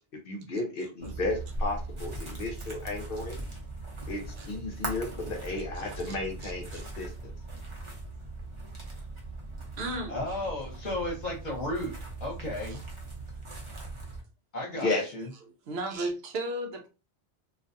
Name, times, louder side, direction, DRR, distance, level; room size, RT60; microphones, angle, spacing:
voice 1, 0.2-3.4 4.1-7.3 14.7-15.1, left 2 dB, 60° left, 0.7 m, -33 dB
sound 1, 1.0-14.2, right 2 dB, 30° right, 0.7 m, -39 dB
voice 2, 6.4-6.8 9.8-10.2 12.7-12.8 14.9-15.0 15.7-16.9, right 1 dB, 70° right, 0.8 m, -35 dB
voice 3, 10.1-11.9 12.2-12.8 14.5-15.3, left 1 dB, 45° left, 1.1 m, -34 dB
2.4 x 2.3 x 2.6 m
omnidirectional pair, 1.2 m